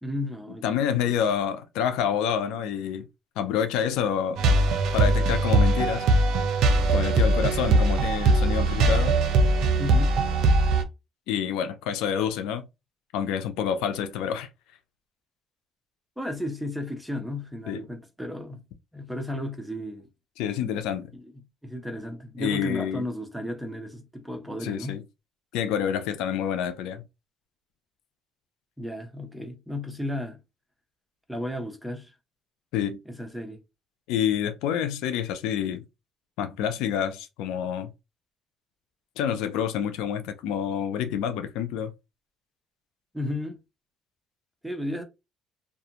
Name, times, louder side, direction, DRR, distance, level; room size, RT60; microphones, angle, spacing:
voice 1, 0.0-1.1 9.8-10.1 16.2-18.6 18.9-20.1 21.1-21.3 21.6-25.0 28.8-30.4 31.3-32.1 33.1-33.6 43.1-43.6 44.6-45.0, left 1 dB, ahead, 0.7 m, -34 dB
voice 2, 0.6-3.1 3.4-4.4 4.9-6.0 6.9-9.2 11.3-12.7 13.1-14.5 17.7-17.8 20.4-21.1 22.4-23.0 24.6-25.0 25.5-27.0 32.7-33.0 34.1-35.8 36.4-37.9 39.2-41.9, left 8 dB, 85° left, 0.4 m, -28 dB
sound 1, 4.4-10.8, right 2 dB, 70° right, 0.5 m, -21 dB
2.4 x 2.2 x 2.8 m
cardioid pair, 105°, 0 cm